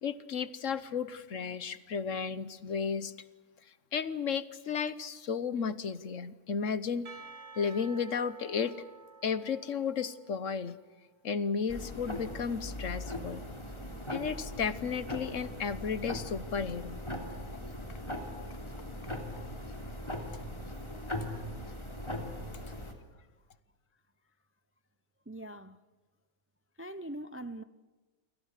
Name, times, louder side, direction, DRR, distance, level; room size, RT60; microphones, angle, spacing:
voice 1, 0.0-3.1 3.9-7.1 7.6-8.7 9.2-10.8 11.2-13.4 14.1-17.0, left 6 dB, 60° left, 1.4 m, -33 dB
Percussion, 7.1-11.0, right 4 dB, 50° right, 1.6 m, -52 dB
sound 1, 11.7-22.9, left 1 dB, 20° left, 3.3 m, -40 dB
voice 2, 22.8-23.3 25.3-25.8 26.8-27.6, right 1 dB, 15° right, 0.5 m, -43 dB
30.0 x 25.5 x 6.7 m
omnidirectional pair, 1.5 m